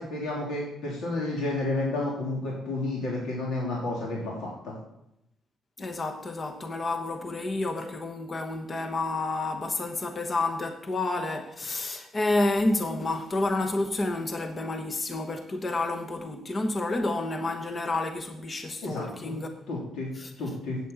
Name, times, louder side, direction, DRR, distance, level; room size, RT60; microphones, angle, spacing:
voice 1, 0.0-4.7 18.8-19.3 19.7-20.1 20.4-20.8, left 2 dB, 80° left, 3.3 m, -31 dB
voice 2, 5.8-19.5 20.2-20.3, left 2 dB, 35° left, 1.3 m, -29 dB
8.5 x 8.3 x 8.3 m
cardioid pair, 90°, 0 cm